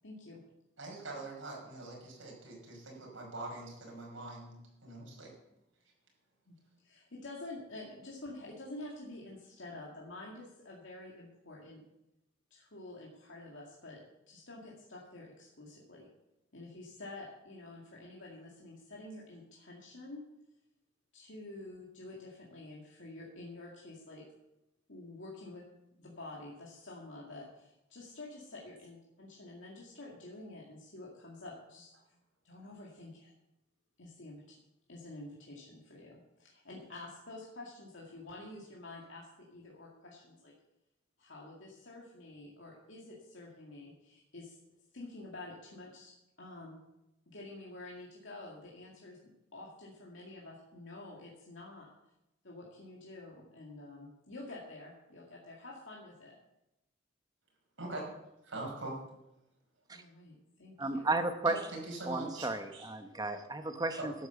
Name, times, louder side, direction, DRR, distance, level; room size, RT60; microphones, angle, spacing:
voice 1, 0.0-0.4 6.5-6.6 6.8-11.8 12.5-14.0 14.3-16.1 16.5-20.2 21.1-24.2 24.9-25.6 26.0-31.9 32.4-33.3 34.0-34.4 34.9-40.5 41.2-44.6 44.9-46.1 46.4-46.8 47.3-49.2 49.5-51.9 52.4-56.3 59.9-61.1, left 2 dB, 70° left, -3 dB, 2.3 m, -48 dB
voice 2, 0.8-5.3 57.8-58.1 58.4-59.0 61.4-62.9 64.0-64.1, right 2 dB, 85° right, -2 dB, 5.4 m, -43 dB
voice 3, 60.8-61.6 62.1-64.1, right 2 dB, 20° right, 7 dB, 1.0 m, -33 dB
12.0 x 8.7 x 7.0 m, 0.90 s
head